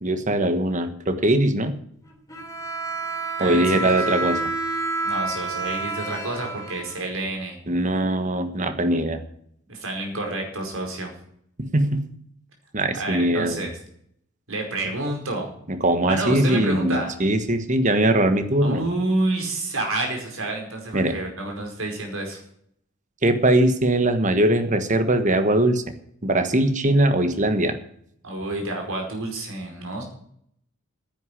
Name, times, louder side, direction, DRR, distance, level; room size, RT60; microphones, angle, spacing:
voice 1, 0.0-1.8 3.4-4.4 7.7-9.2 11.6-12.0 12.7-13.7 15.7-18.8 20.9-21.1 23.2-25.8 26.2-27.8, right 1 dB, 40° right, 9 dB, 1.4 m, -21 dB
Bowed string instrument, 2.3-7.3, right 3 dB, 15° left, 2.9 m, -29 dB
voice 2, 3.4-4.2 5.0-7.6 9.7-11.1 12.9-13.8 14.5-15.5 16.1-17.1 18.6-22.4 28.2-30.0, right 2 dB, 85° right, 2 dB, 4.9 m, -29 dB
10.5 x 9.3 x 9.9 m, 0.68 s
head